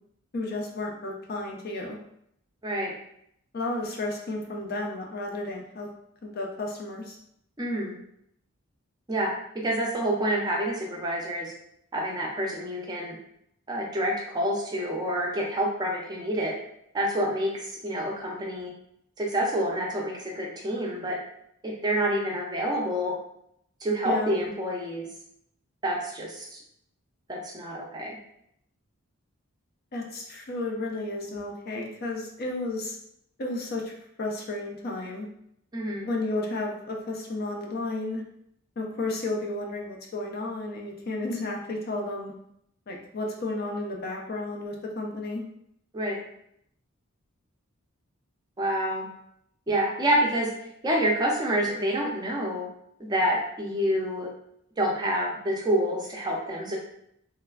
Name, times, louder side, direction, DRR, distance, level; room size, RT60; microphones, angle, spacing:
voice 1, 0.3-2.0 3.5-5.9 6.2-7.2 24.0-24.3 29.9-33.0 33.4-35.3 36.0-38.2 38.8-42.3 42.9-45.4, left 2 dB, 45° left, 0 dB, 0.5 m, -32 dB
voice 2, 2.6-2.9 7.6-7.9 9.1-9.3 9.6-11.5 11.9-13.2 13.7-16.5 16.9-18.7 19.2-21.2 21.6-23.1 23.8-25.1 25.8-26.5 27.3-28.2 35.7-36.1 45.9-46.2 48.6-49.1 49.7-50.5 50.8-52.7 53.0-54.3 54.8-56.8, right 1 dB, 20° right, -2 dB, 0.5 m, -27 dB
3.1 x 2.2 x 2.3 m, 0.73 s
head